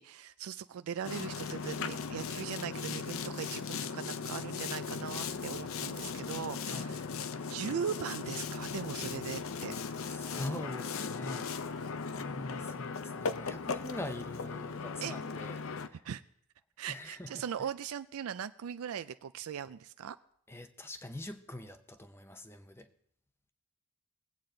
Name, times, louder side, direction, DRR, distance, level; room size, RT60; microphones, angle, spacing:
voice 1, 0.0-7.0 7.5-9.8 15.0-15.2 16.0-16.2 16.8-20.2, right 8 dB, 75° right, 0.4 m, -39 dB
Boat Water vehicle, 1.0-15.9, left 5 dB, 65° left, 0.6 m, -38 dB
voice 2, 10.0-11.8 12.2-16.0 16.9-17.4 20.5-22.9, left 1 dB, 10° left, 0.6 m, -44 dB
21.0 x 8.5 x 3.8 m
head